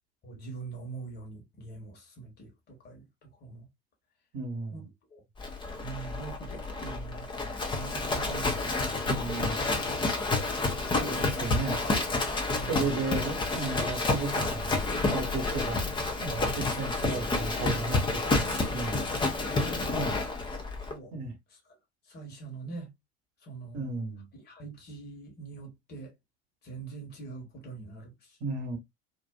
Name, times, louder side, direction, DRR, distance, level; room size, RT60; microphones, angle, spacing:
voice 1, 0.2-3.1 3.4-3.7 4.7-4.8 5.1-5.2 5.8-8.6 12.5-13.1 19.5-20.2 20.9-21.1 22.1-22.9 23.4-23.9 24.4-26.1 26.6-28.4, right 4 dB, 30° left, 1.3 m, -43 dB
voice 2, 4.3-4.8 9.1-9.6 11.0-11.8 12.7-15.8 16.2-19.5 19.9-20.1 21.1-21.3 23.7-24.3 28.4-28.8, right 3 dB, 45° right, 1.1 m, -35 dB
Livestock farm animals working animals, 5.4-20.9, left 3 dB, 15° left, 0.6 m, -29 dB
2.6 x 2.4 x 2.3 m
figure-of-eight pair, 70°, 34 cm